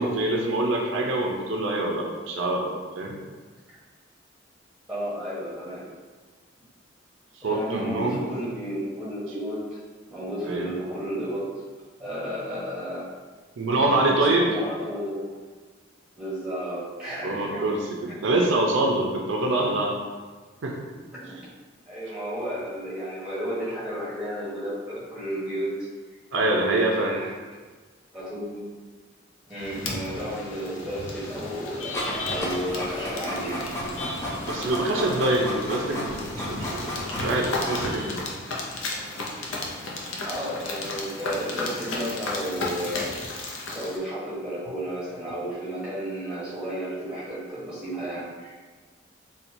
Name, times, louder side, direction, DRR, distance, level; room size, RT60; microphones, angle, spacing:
voice 1, 0.0-3.2 7.4-8.2 10.5-10.7 13.6-14.5 17.2-20.0 20.6-20.8 26.3-27.1 34.5-38.2, right 2 dB, 75° right, 0 dB, 0.4 m, -25 dB
voice 2, 4.9-6.0 7.4-9.8 10.1-11.5 12.0-13.1 13.8-15.3 16.1-17.7 21.1-21.4 21.9-25.9 26.6-27.3 28.1-28.6 29.5-32.0 32.3-33.7 40.2-43.2 43.7-48.6, equal, 5° right, -9 dB, 0.9 m, -32 dB
sound 1, 29.5-44.0, left 2 dB, 80° left, 0.5 m, -34 dB
Printer, 31.9-38.2, equal, 15° left, 0.4 m, -33 dB
4.3 x 2.2 x 2.6 m, 1.4 s
head